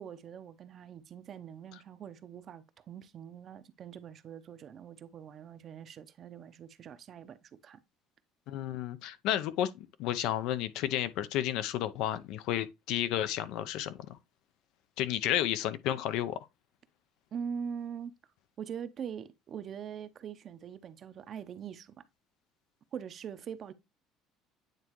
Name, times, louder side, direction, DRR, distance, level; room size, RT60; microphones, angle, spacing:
voice 1, 0.0-7.8 17.3-18.1 18.6-22.0 22.9-23.7, right 7 dB, 40° right, 0.6 m, -43 dB
voice 2, 8.5-13.9 15.0-16.4, left 12 dB, 75° left, 0.6 m, -32 dB
9.1 x 3.5 x 3.0 m
cardioid pair, 130°, 0 cm